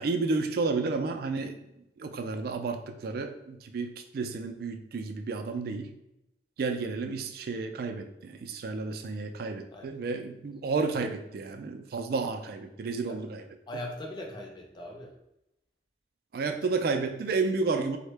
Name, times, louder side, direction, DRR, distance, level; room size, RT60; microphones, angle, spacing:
voice 1, 0.0-1.6 2.0-5.9 6.6-13.4 16.3-18.0, right 4 dB, 55° right, 6 dB, 0.3 m, -31 dB
voice 2, 13.7-15.1 16.4-16.6 17.6-17.7, left 1 dB, 25° left, 1 dB, 0.5 m, -40 dB
3.6 x 2.1 x 3.2 m, 0.87 s
head